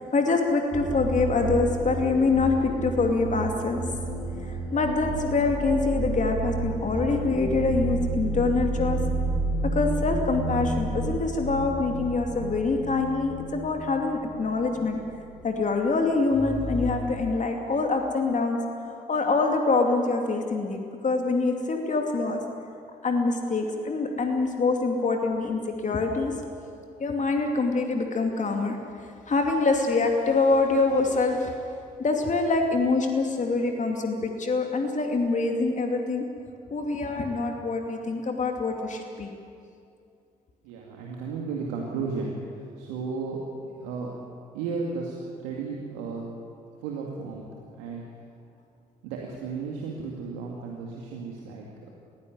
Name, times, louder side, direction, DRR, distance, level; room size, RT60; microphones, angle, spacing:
voice 1, 0.0-3.8 4.3-9.0 9.7-15.0 15.4-22.4 23.0-26.3 27.0-28.8 29.0-31.6 32.0-36.2 36.7-39.3, left 3 dB, 40° left, 3 dB, 2.7 m, -25 dB
sound 1, 0.7-15.4 15.7-15.9 16.2-16.9, right 2 dB, 20° right, 7.1 m, -31 dB
voice 2, 40.6-43.4 43.7-44.1 44.5-46.3 46.8-48.3 49.0-51.9, right 4 dB, 75° right, -1 dB, 2.3 m, -34 dB
22.0 x 16.5 x 9.7 m, 2.4 s
hypercardioid pair, 45°, 20 cm